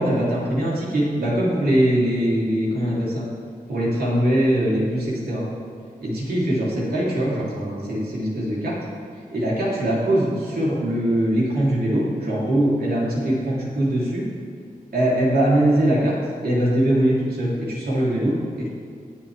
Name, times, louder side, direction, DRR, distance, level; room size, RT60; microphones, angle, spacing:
voice 1, 0.0-3.2 3.7-5.5 6.0-8.8 9.3-14.2 14.9-16.1 16.4-18.7, right 1 dB, 80° right, -6 dB, 3.0 m, -22 dB
17.0 x 7.2 x 3.4 m, 2.3 s
cardioid pair, 45°, 16 cm